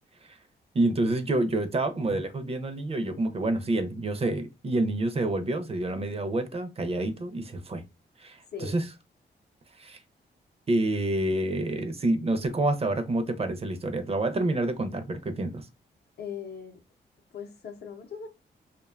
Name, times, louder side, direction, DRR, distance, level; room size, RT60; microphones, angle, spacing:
voice 1, 0.7-7.8 8.2-8.8 9.8-10.0 10.7-15.7, right 2 dB, 35° right, 0.5 m, -28 dB
voice 2, 8.5-8.8 16.2-16.8 17.3-18.3, left 7 dB, 65° left, 0.6 m, -39 dB
2.6 x 2.2 x 2.3 m
cardioid pair, 75°, 18 cm